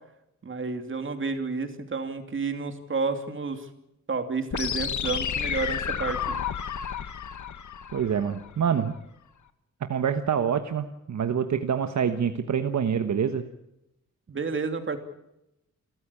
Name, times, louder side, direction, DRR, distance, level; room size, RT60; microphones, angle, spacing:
voice 1, 0.4-3.7 4.1-6.4 14.3-15.0, right 4 dB, 45° right, 7 dB, 2.8 m, -30 dB
sound 1, 4.5-8.5, left 8 dB, 80° left, 1.5 m, -31 dB
voice 2, 7.9-8.9 9.8-13.4, right 7 dB, 70° right, 8 dB, 1.3 m, -26 dB
28.0 x 14.0 x 8.6 m, 0.85 s
wide cardioid pair, 150°, 29 cm